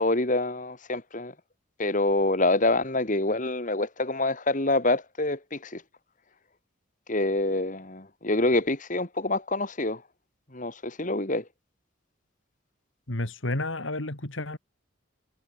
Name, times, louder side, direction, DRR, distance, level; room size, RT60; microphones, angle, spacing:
voice 1, 0.0-1.3 1.8-5.8 7.1-10.0 10.5-11.4, left 2 dB, 40° left, 2.4 m, -26 dB
voice 2, 13.1-14.6, left 2 dB, 70° left, 3.0 m, -31 dB
head